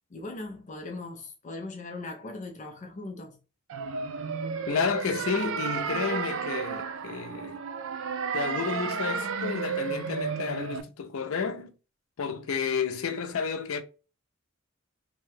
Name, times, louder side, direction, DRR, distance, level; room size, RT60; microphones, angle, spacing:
voice 1, 0.1-3.4, left 2 dB, 40° left, 0.5 m, -39 dB
sound 1, 3.7-10.8, right 6 dB, 70° right, 0.4 m, -32 dB
voice 2, 4.7-7.6 8.3-11.7 12.2-13.8, left 6 dB, 90° left, 0.5 m, -31 dB
2.7 x 2.2 x 3.1 m
head